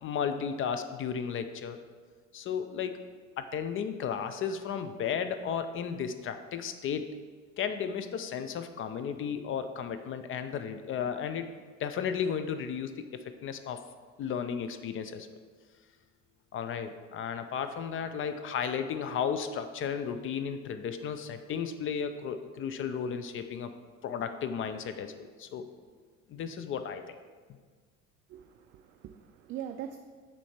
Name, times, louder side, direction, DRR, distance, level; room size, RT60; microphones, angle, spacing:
voice 1, 0.0-1.8 2.3-3.0 3.4-7.1 7.6-11.5 11.8-13.8 14.2-15.3 16.5-23.7 24.0-25.6 26.3-27.2, left 7 dB, 35° left, 9 dB, 0.5 m, -34 dB
voice 2, 28.3-30.0, right 10 dB, 35° right, 6 dB, 0.4 m, -42 dB
7.0 x 4.4 x 4.4 m, 1.5 s
figure-of-eight pair, 65°, 39 cm